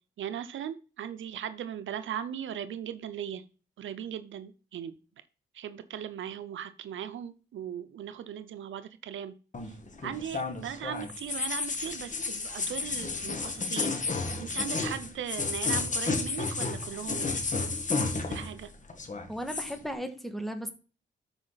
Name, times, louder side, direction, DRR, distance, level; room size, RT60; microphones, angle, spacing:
voice 1, 0.2-3.4 3.8-4.9 5.5-9.3 10.0-17.9 18.1-18.7, right 9 dB, 80° right, 0.7 m, -38 dB
sound 1, 9.5-18.6 18.9-19.8, left 3 dB, 40° left, 1.6 m, -32 dB
voice 2, 19.3-20.7, equal, ahead, 1.6 m, -35 dB
13.0 x 4.9 x 4.1 m
cardioid pair, 90°, 20 cm